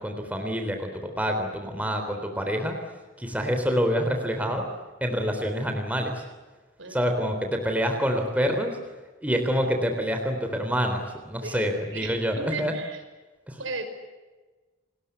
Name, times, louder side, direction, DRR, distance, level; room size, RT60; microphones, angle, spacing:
voice 1, 0.0-2.8 3.2-4.7 5.0-6.2 6.9-8.8 9.2-12.7 13.5-13.6, equal, 5° right, 4 dB, 3.7 m, -27 dB
voice 2, 11.4-13.0 13.6-13.9, right 3 dB, 65° right, 7 dB, 5.7 m, -36 dB
30.0 x 21.5 x 8.3 m, 1.2 s
head